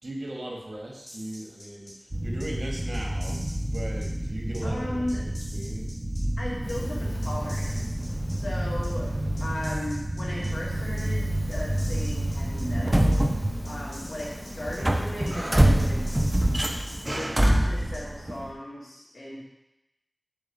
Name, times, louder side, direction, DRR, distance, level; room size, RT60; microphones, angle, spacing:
voice 1, 0.0-5.9 8.6-8.7, right 1 dB, 65° right, -1 dB, 2.0 m, -38 dB
sound 1, 1.1-1.9 2.4-2.5 2.9-4.1 4.5-4.6 5.1-6.2 6.7-6.8 7.2-8.3 8.8-8.9 9.4-10.5 11.0-11.1 11.5-12.6 13.1-13.2 13.6-14.8 15.3-15.4 15.8-17.5 17.9-18.0, equal, 70° left, 2.7 m, -46 dB
sound 2, 2.1-14.2 14.6-18.5, right 1 dB, 30° right, 1.0 m, -27 dB
voice 2, 4.6-5.2 6.4-9.1 9.4-13.2 13.6-16.1 17.0-19.4, left 1 dB, 90° left, -4 dB, 2.5 m, -36 dB
Fire, 6.5-9.7 10.1-17.2, equal, 5° left, 1.7 m, -41 dB
7.2 x 5.2 x 7.1 m, 0.92 s
wide cardioid pair, 50°, 0 cm